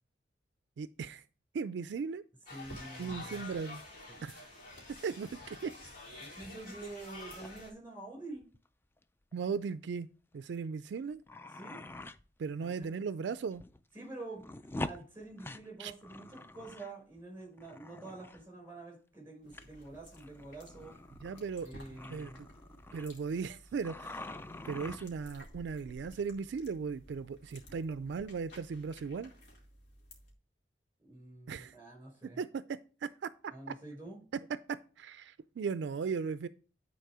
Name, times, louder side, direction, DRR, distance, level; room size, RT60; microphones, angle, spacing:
voice 1, 0.8-1.2 1.5-2.2 3.0-3.8 4.2-4.4 5.0-5.7 9.3-10.1 10.3-11.2 12.4-13.6 15.8-15.9 21.2-21.7 22.1-22.5 22.9-24.2 24.7-29.3 31.5-31.7 32.4-33.3 35.0-36.5, right 5 dB, 75° right, 0.3 m, -37 dB
sound 1, 2.5-7.7, left 2 dB, 55° left, 3.3 m, -48 dB
voice 2, 2.5-3.5 4.1-4.2 6.2-8.4 11.5-11.8 12.6-13.0 13.9-14.5 14.8-20.9 21.6-22.4 31.0-32.4 33.5-34.2, right 2 dB, 15° right, 5.0 m, -47 dB
sound 2, 6.6-7.0 7.3-7.5 8.4-8.7 9.0-9.1 9.3-9.5 10.3-10.4 11.0-12.2 12.8-12.9 13.4-13.8 14.1-16.9 17.2-18.4 19.5-19.6 20.1-23.6 23.8-25.3 26.2-26.4, left 2 dB, 15° left, 0.3 m, -45 dB
sound 3, 19.4-30.3, equal, 75° left, 2.2 m, -56 dB
9.2 x 4.2 x 4.7 m
head